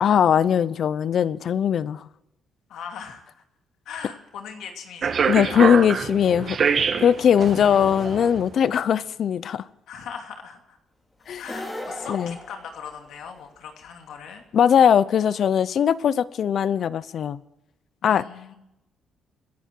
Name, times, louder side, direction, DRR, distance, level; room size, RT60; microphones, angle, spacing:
voice 1, 0.0-2.0 5.3-6.6 7.0-9.6 11.3-11.4 12.1-12.4 14.5-17.4 18.0-18.3, left 8 dB, 60° left, 0.7 m, -20 dB
voice 2, 2.7-3.2 3.9-5.9 7.2-7.6 9.9-10.8 11.4-14.4 18.0-18.6, left 7 dB, 80° left, 2.6 m, -39 dB
sound 1, 5.0-8.5, right 6 dB, 50° right, 1.5 m, -25 dB
sound 2, 11.4-13.4, left 1 dB, 15° left, 4.1 m, -37 dB
25.0 x 10.5 x 4.7 m
cardioid pair, 90°, 0 cm